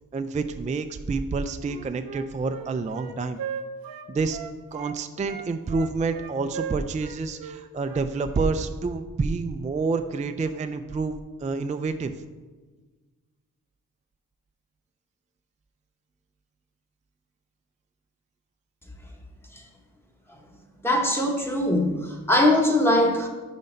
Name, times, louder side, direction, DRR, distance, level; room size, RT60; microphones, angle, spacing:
voice 1, 0.1-3.4 4.1-4.4 4.7-11.2 11.4-12.1, right 4 dB, 20° right, 8 dB, 0.4 m, -28 dB
Wind instrument woodwind instrument, 1.6-5.0 5.3-8.5, right 7 dB, 75° right, 0.6 m, -37 dB
voice 2, 20.8-23.3, left 1 dB, 5° left, 1 dB, 1.2 m, -21 dB
5.5 x 4.2 x 5.2 m, 1.3 s
cardioid pair, 50°, 36 cm